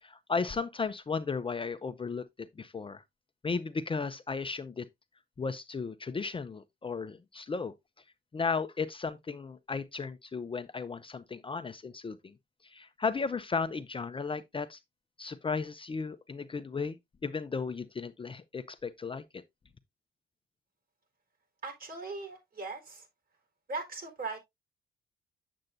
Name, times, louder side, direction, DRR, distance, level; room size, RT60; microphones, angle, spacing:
voice 1, 0.0-3.0 3.4-4.9 5.4-7.7 8.3-12.3 12.6-14.8 15.2-19.2, left 5 dB, 25° left, 0.6 m, -35 dB
voice 2, 21.6-23.1 23.7-24.4, right 3 dB, 45° right, 4.2 m, -39 dB
7.9 x 7.5 x 2.5 m
cardioid pair, 90°, 20 cm